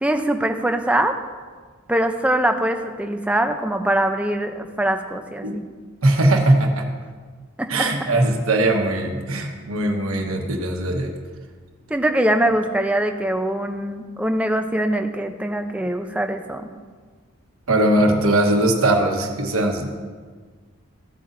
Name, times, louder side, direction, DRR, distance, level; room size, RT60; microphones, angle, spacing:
voice 1, 0.0-1.2 1.9-5.6 7.6-7.7 11.9-16.6, right 1 dB, 5° right, 5 dB, 0.5 m, -22 dB
voice 2, 6.0-6.9 7.7-11.1 17.7-19.9, right 1 dB, 80° right, 2 dB, 1.2 m, -20 dB
15.5 x 8.1 x 2.6 m, 1.5 s
head